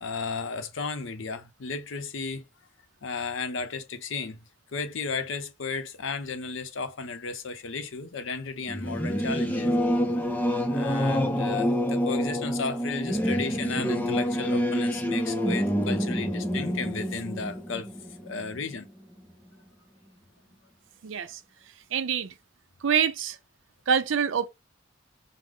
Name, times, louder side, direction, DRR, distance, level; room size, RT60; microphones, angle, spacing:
voice 1, 0.0-2.4 3.0-4.4 4.7-9.7 10.7-17.9 18.2-18.9, left 4 dB, 80° left, 0.6 m, -34 dB
Singing / Musical instrument, 8.7-18.8, equal, 10° left, 0.5 m, -27 dB
voice 2, 21.0-21.4 21.9-22.3 22.8-23.4 23.9-24.5, right 7 dB, 80° right, 0.5 m, -25 dB
4.9 x 2.0 x 3.6 m
head